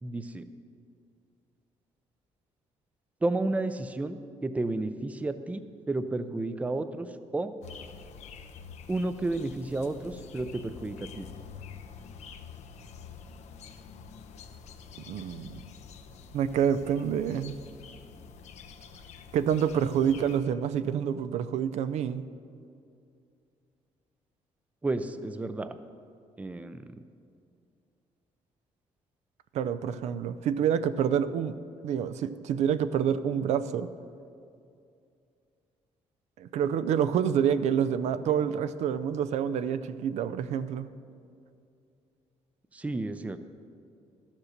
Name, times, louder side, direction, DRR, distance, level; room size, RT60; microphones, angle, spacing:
voice 1, 0.0-0.5 3.2-7.1 7.3-7.5 8.9-11.3 24.8-25.8 26.4-26.8 42.7-43.4, right 2 dB, 10° right, 11 dB, 0.5 m, -32 dB
sound 1, 7.6-20.4, left 6 dB, 80° left, 0.8 m, -47 dB
voice 2, 15.1-15.6 16.3-17.6 19.3-22.3 29.5-31.6 31.8-33.9 36.4-40.9, right 8 dB, 75° right, 13 dB, 0.5 m, -27 dB
12.5 x 7.3 x 6.5 m, 2.4 s
cardioid pair, 140°, 12 cm